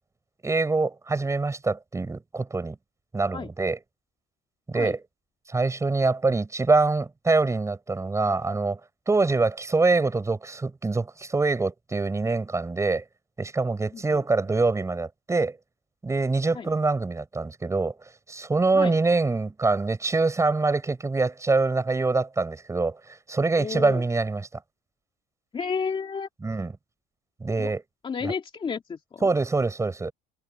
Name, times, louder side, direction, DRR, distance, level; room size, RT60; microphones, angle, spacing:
voice 1, 0.4-2.8 3.1-3.8 4.7-5.0 5.5-8.8 9.1-13.0 13.4-15.6 16.0-17.9 18.3-24.5 26.4-26.8 27.4-27.8 28.2-28.3 29.2-30.1, right 3 dB, 15° right, 7.1 m, -24 dB
voice 2, 23.6-24.0 25.5-26.3 27.6-27.7 28.0-29.3, left 5 dB, 25° left, 2.6 m, -31 dB
cardioid pair, 130°, 20 cm